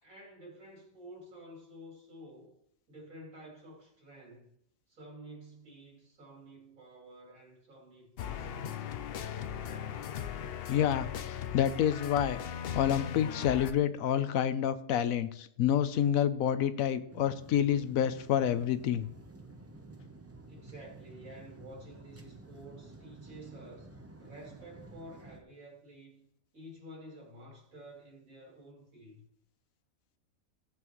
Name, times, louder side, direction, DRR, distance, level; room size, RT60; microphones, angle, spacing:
voice 1, 0.0-2.6 2.9-4.5 4.9-8.9 20.5-23.9 24.2-26.3 26.5-29.2, right 1 dB, 80° right, -2 dB, 3.3 m, -51 dB
sound 1, 8.2-13.7, left 9 dB, 60° left, 0.6 m, -38 dB
voice 2, 10.7-12.4 12.7-19.1, left 10 dB, 80° left, 12 dB, 1.1 m, -28 dB
sound 2, 17.1-25.4, right 2 dB, 15° right, 0.5 m, -51 dB
15.5 x 7.8 x 3.1 m, 0.70 s
omnidirectional pair, 1.5 m